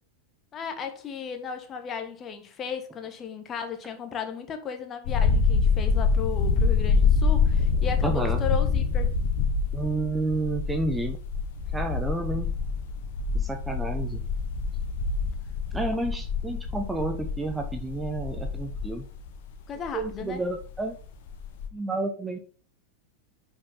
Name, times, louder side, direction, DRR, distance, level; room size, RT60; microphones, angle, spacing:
voice 1, 0.5-9.1 19.7-20.4, left 6 dB, 25° left, 1.4 m, -35 dB
sound 1, 5.1-20.8 21.1-21.7, left 5 dB, 50° left, 1.4 m, -26 dB
voice 2, 8.0-8.4 9.7-11.2 11.7-12.6 13.3-14.2 15.7-19.0 19.9-21.0 21.7-22.4, right 2 dB, 10° right, 1.0 m, -30 dB
9.8 x 5.2 x 3.5 m
figure-of-eight pair, 90°, 0 cm